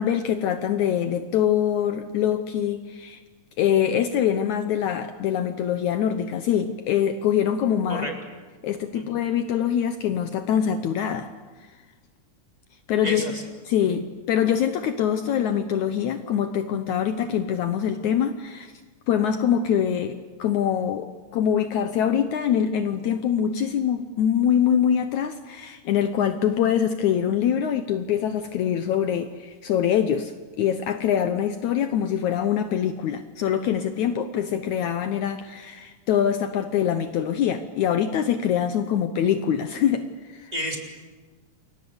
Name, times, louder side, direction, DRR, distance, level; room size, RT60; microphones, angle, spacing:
voice 1, 0.0-3.2 3.6-8.1 8.6-11.3 12.9-13.3 13.7-18.7 19.1-40.5, left 9 dB, 70° left, 9 dB, 2.1 m, -24 dB
voice 2, 13.0-13.4 40.5-40.8, equal, 10° right, 0 dB, 3.5 m, -30 dB
29.0 x 22.0 x 8.0 m, 1.4 s
omnidirectional pair, 3.9 m